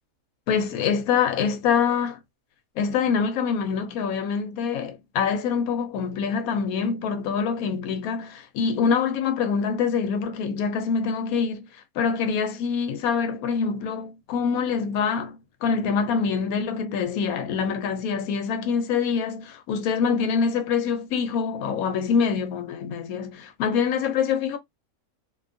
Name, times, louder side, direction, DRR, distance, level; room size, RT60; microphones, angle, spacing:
voice 1, 0.5-2.2 2.8-11.7 12.0-24.6, left 6 dB, 80° left, 1.0 m, -25 dB
2.5 x 2.2 x 2.5 m
omnidirectional pair, 1.5 m